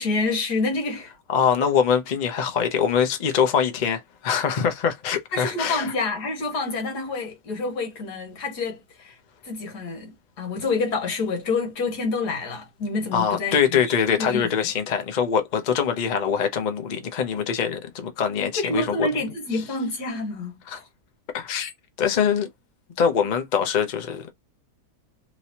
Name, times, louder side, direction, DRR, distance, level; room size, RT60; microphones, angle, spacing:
voice 1, 0.0-1.1 5.3-9.2 9.4-14.5 18.6-20.9, left 3 dB, 85° left, 1.9 m, -28 dB
voice 2, 1.3-5.9 13.1-19.1 20.7-20.8 21.3-21.7 22.0-22.5 23.0-24.3, left 7 dB, 45° left, 0.6 m, -23 dB
3.3 x 3.0 x 2.8 m
omnidirectional pair, 1.7 m